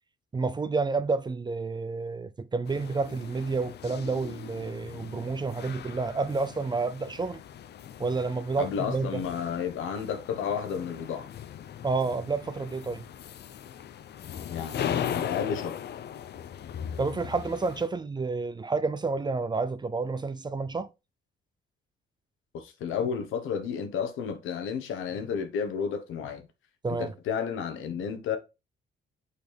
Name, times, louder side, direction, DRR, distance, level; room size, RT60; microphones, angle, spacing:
voice 1, 0.3-7.4 8.0-9.2 11.8-13.0 17.0-20.9 26.8-27.1, right 4 dB, 20° right, 0.5 m, -30 dB
sound 1, 2.7-17.9, left 9 dB, 60° left, 0.6 m, -39 dB
voice 2, 8.6-11.3 14.5-15.8 22.5-26.5 26.9-28.4, left 7 dB, 85° left, 1.2 m, -32 dB
6.7 x 4.2 x 3.4 m
cardioid pair, 90°, 20 cm